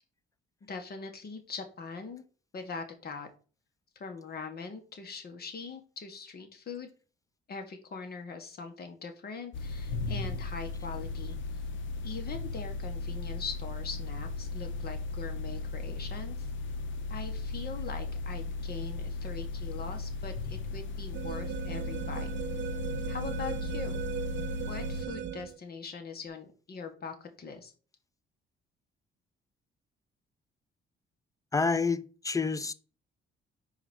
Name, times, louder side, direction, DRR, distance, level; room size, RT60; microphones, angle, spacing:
voice 1, 0.6-2.2 2.5-3.3 4.0-6.9 7.5-11.4 12.0-16.5 17.1-22.3 23.1-24.0 24.7-27.7, left 5 dB, 50° left, 1.8 m, -42 dB
sound 1, 9.5-25.0, left 3 dB, 70° left, 1.0 m, -36 dB
sound 2, 21.1-25.6, right 9 dB, 70° right, 0.8 m, -38 dB
voice 2, 31.5-32.7, left 4 dB, 15° left, 0.6 m, -28 dB
5.0 x 4.9 x 6.3 m
cardioid pair, 90°, 20 cm